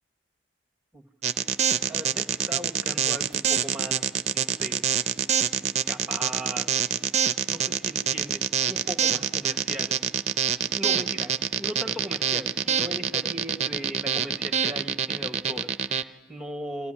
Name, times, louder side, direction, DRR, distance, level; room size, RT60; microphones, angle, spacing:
sound 1, 1.2-16.0, right 8 dB, 40° right, 0.6 m, -25 dB
voice 1, 1.9-4.9 5.9-6.9 7.5-10.0 10.7-16.9, equal, 5° right, 5 dB, 1.3 m, -38 dB
24.5 x 15.0 x 9.9 m, 1.4 s
head